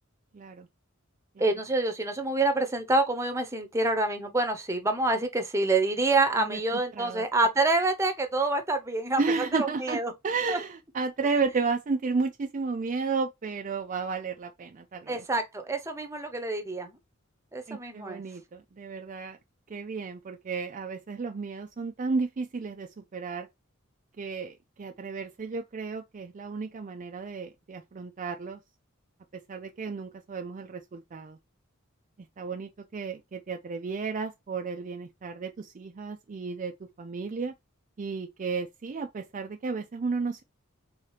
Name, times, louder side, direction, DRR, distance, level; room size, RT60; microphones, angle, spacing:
voice 1, 0.3-0.7 1.4-1.5 6.4-7.2 9.2-15.2 17.7-19.4 19.7-23.5 24.2-28.6 29.3-31.4 32.4-37.5 38.0-40.4, right 4 dB, 40° right, 0.4 m, -33 dB
voice 2, 1.4-9.2 9.5-10.1 10.5-10.6 15.1-16.9 17.5-18.2, right 2 dB, 15° right, 0.8 m, -27 dB
3.8 x 2.8 x 4.8 m
head